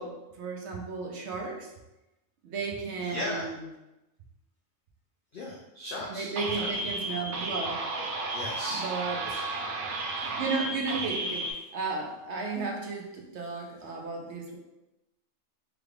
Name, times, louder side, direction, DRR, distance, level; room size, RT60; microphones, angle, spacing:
voice 1, 0.0-1.7 2.4-3.7 6.1-7.9 8.7-9.4 10.2-14.6, right 4 dB, 65° right, 0 dB, 0.8 m, -34 dB
voice 2, 3.0-3.5 5.3-6.3 6.6-6.7 8.3-8.9 9.2-9.6, left 1 dB, 70° left, -2 dB, 0.5 m, -37 dB
sound 1, 6.4-11.5, right 2 dB, 85° right, 1.0 m, -33 dB
3.4 x 2.3 x 3.3 m, 0.97 s
omnidirectional pair, 1.4 m